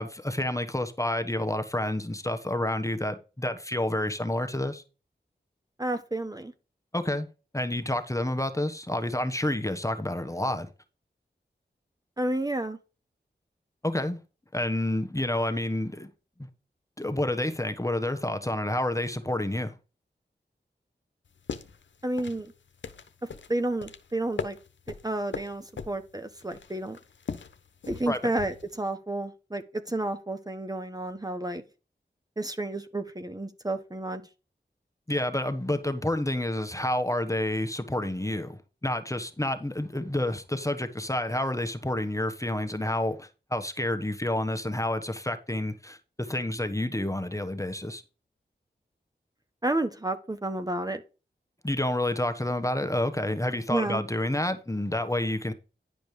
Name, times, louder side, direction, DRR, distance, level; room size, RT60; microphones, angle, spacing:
voice 1, 0.0-4.8 6.9-7.3 7.5-10.7 13.8-14.2 14.5-16.1 17.0-19.8 28.1-28.3 35.1-48.0 51.6-55.5, left 1 dB, 15° left, 1.3 m, -29 dB
voice 2, 5.8-6.5 12.2-12.8 22.0-22.5 23.2-24.6 25.0-27.0 27.9-31.6 32.4-34.2 49.6-51.0 53.7-54.0, right 1 dB, 20° right, 1.1 m, -31 dB
sound 1, 21.3-28.8, left 5 dB, 80° left, 0.9 m, -40 dB
10.5 x 5.2 x 5.0 m
cardioid pair, 40°, 19 cm